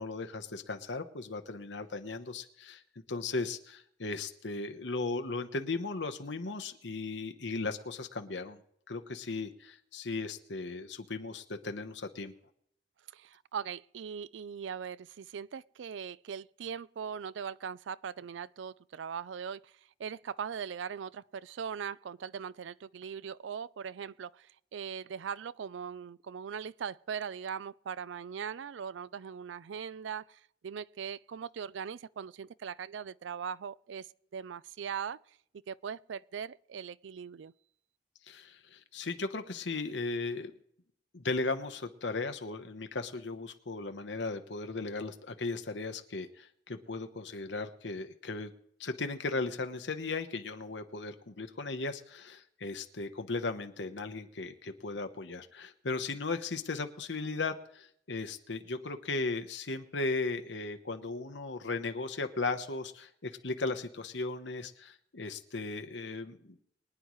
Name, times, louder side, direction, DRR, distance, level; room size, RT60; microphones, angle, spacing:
voice 1, 0.0-2.8 3.1-8.6 8.9-12.3 38.3-40.5 41.1-48.5 48.8-66.6, left 3 dB, 75° left, 1.0 m, -36 dB
voice 2, 13.1-35.2 35.7-37.5, right 7 dB, 80° right, 0.4 m, -40 dB
23.5 x 9.6 x 3.1 m
head